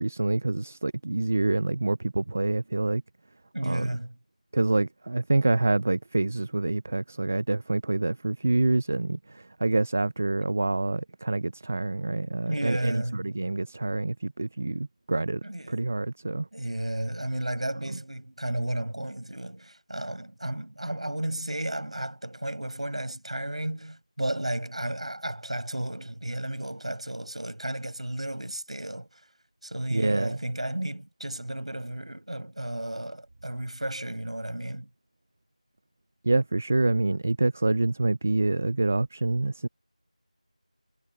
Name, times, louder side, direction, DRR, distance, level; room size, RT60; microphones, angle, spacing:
voice 1, 0.0-3.0 3.6-3.9 4.5-15.4 15.7-16.5 29.9-30.4 36.2-39.7, right 2 dB, 15° right, 0.5 m, -26 dB
voice 2, 3.5-4.1 12.5-13.3 15.4-15.9 16.5-29.2 29.6-34.9, right 1 dB, 65° right, 6.0 m, -33 dB
figure-of-eight pair, 175°, 4 cm